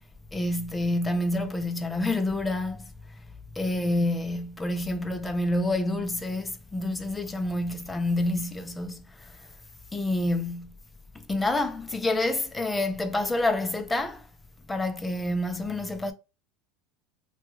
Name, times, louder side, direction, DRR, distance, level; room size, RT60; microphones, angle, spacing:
voice 1, 0.3-2.9 3.6-9.4 9.9-10.7 11.1-14.3 14.7-16.1, left 1 dB, 10° left, 0.4 m, -28 dB
2.9 x 2.3 x 3.0 m
supercardioid pair, 125°, 0 cm